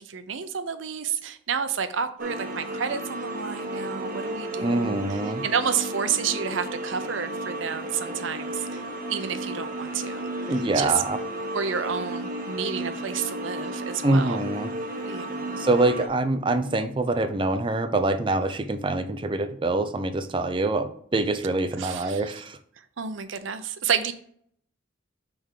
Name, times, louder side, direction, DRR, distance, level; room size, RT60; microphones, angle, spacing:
voice 1, 0.0-5.0 5.4-8.7 9.1-10.3 10.8-10.9 11.5-14.4 15.1-15.6 21.8-22.2 23.0-24.1, right 7 dB, 75° right, 0.6 m, -30 dB
sound 1, 2.2-16.1, right 1 dB, 45° right, 0.8 m, -33 dB
voice 2, 4.6-5.4 10.5-11.2 14.0-14.7 15.6-22.6, right 2 dB, 25° right, 0.4 m, -25 dB
5.5 x 3.5 x 4.8 m
head